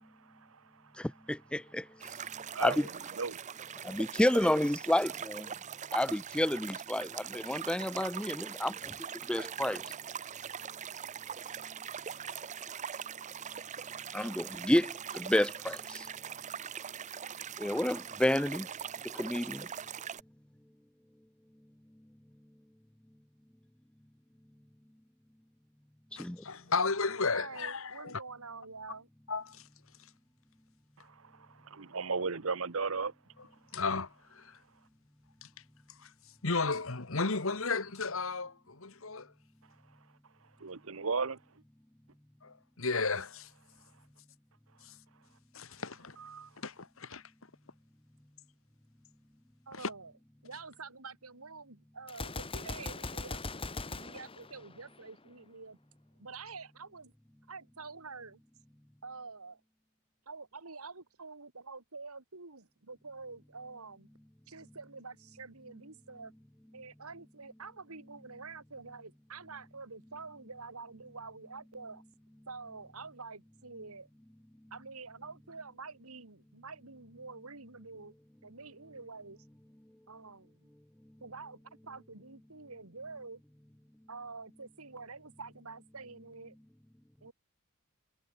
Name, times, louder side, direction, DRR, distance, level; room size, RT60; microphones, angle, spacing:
voice 1, 0.0-0.8 2.5-2.9 3.2-3.4 31.0-33.1 40.6-41.4 46.2-46.5, right 4 dB, 65° right, 1.0 m, -36 dB
voice 2, 1.0-2.2 2.6-2.9 3.8-5.5 5.9-8.9 9.3-9.8 14.1-16.1 17.6-18.7 19.0-19.7 26.2-26.4, left 1 dB, 5° left, 0.4 m, -30 dB
sound 1, 2.0-20.2, right 8 dB, 35° right, 0.6 m, -42 dB
voice 3, 26.2-28.2 29.3-29.6 33.7-34.6 35.4-35.5 36.0-36.1 36.4-39.3 42.4-43.5 44.8-44.9 45.5-46.2 46.6-47.2 49.7-49.9, left 4 dB, 65° left, 1.8 m, -34 dB
voice 4, 27.3-29.1 49.7-50.1 50.4-55.8 56.2-57.1 57.5-58.4 59.0-59.6 60.3-64.1 64.5-66.3 66.7-72.0 72.5-74.1 74.7-78.1 78.4-79.4 80.1-80.7 81.2-83.4 84.1-86.5 87.2-87.3, right 4 dB, 80° right, 3.1 m, -47 dB
Gunshot gunfire, 52.1-55.2, left 3 dB, 25° left, 1.4 m, -40 dB
head